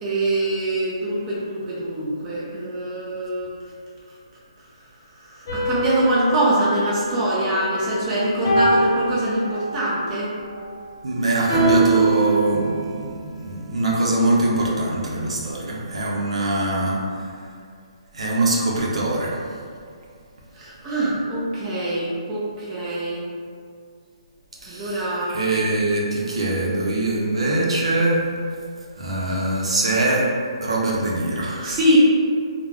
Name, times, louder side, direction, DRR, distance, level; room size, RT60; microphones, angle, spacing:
voice 1, 0.0-3.5 5.2-10.3 20.6-23.2 24.7-25.4 26.3-26.5 31.6-32.0, right 1 dB, 20° right, -7 dB, 0.5 m, -24 dB
sound 1, 5.5-7.9 8.4-9.9 11.5-13.2, right 3 dB, 35° left, 0.8 m, -24 dB
voice 2, 11.0-17.0 18.1-19.4 24.6-28.2 29.0-30.2 30.6-31.8, right 2 dB, 75° right, -4 dB, 0.6 m, -22 dB
2.3 x 2.1 x 3.3 m, 2.2 s
hypercardioid pair, 155°, 3 cm